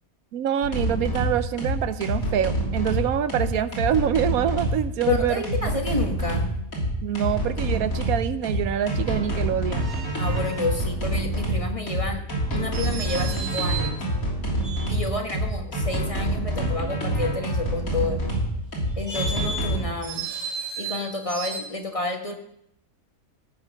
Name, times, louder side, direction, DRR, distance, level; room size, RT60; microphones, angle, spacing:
voice 1, 0.3-5.4 7.0-9.9, right 9 dB, 80° right, 13 dB, 1.1 m, -25 dB
sound 1, 0.6-19.8, right 1 dB, 70° left, 3.6 m, -26 dB
voice 2, 5.1-6.5 10.2-12.2 12.5-14.0 14.9-18.2 19.0-20.2 20.8-22.3, left 2 dB, 25° left, 3 dB, 1.3 m, -29 dB
sound 2, 9.7-10.7 12.7-14.0 14.5-15.3 18.8-21.6, right 4 dB, 50° right, 2.3 m, -34 dB
16.5 x 5.7 x 6.5 m, 0.77 s
omnidirectional pair, 1.5 m